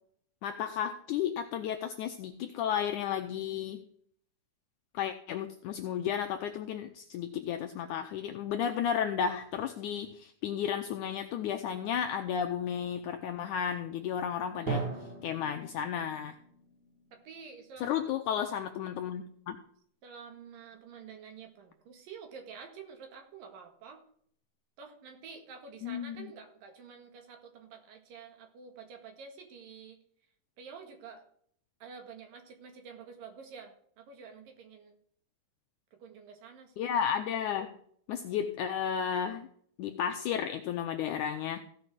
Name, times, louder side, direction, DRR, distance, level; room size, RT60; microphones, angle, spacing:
voice 1, 0.4-3.8 4.9-14.9 15.2-16.4 17.8-19.6 25.8-26.3 36.8-37.7 38.1-39.5 39.8-41.6, left 8 dB, 80° left, 6 dB, 1.8 m, -33 dB
voice 2, 14.5-15.1 17.1-18.2 20.0-24.0 24.8-30.0 30.6-31.2 31.8-35.0 35.9-36.9, right 6 dB, 70° right, 4 dB, 3.4 m, -49 dB
Drum, 14.7-18.4, right 5 dB, 55° right, 3.5 m, -40 dB
16.0 x 5.4 x 6.1 m, 0.62 s
omnidirectional pair, 4.2 m